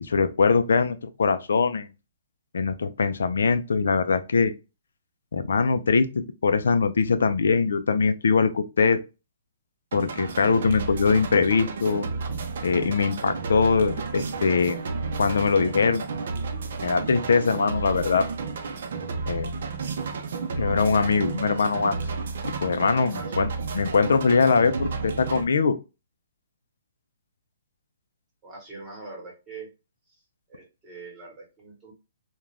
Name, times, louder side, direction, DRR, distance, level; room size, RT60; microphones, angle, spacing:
voice 1, 0.0-1.9 2.5-4.5 5.3-9.0 9.9-12.1 12.6-14.8 15.2-16.0 16.8-18.3 19.3-19.6 20.6-22.0 22.4-25.8, left 5 dB, 85° left, 0.3 m, -22 dB
sound 1, 9.9-25.4, right 4 dB, 60° right, 0.5 m, -32 dB
voice 2, 23.1-23.4 28.4-29.7 30.1-30.2 30.5-31.9, right 3 dB, 15° right, 1.0 m, -43 dB
2.4 x 2.2 x 3.1 m
hypercardioid pair, 165°, 0 cm